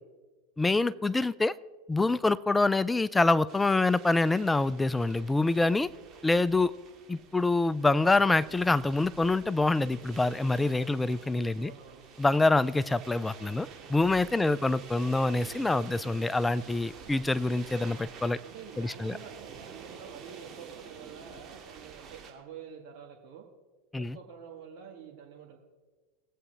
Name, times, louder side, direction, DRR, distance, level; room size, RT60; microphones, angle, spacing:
voice 1, 0.6-1.6 1.9-5.9 6.2-6.7 7.1-11.7 12.2-18.4 18.8-19.1 23.9-24.2, left 2 dB, 10° left, 18 dB, 0.4 m, -26 dB
sound 1, 3.5-22.3, right 6 dB, 35° right, 2.3 m, -49 dB
voice 2, 11.6-12.0 14.4-14.7 18.4-23.5 24.0-25.6, right 7 dB, 60° right, 0 dB, 1.6 m, -48 dB
20.0 x 8.2 x 3.4 m, 1.3 s
hypercardioid pair, 85°, 0 cm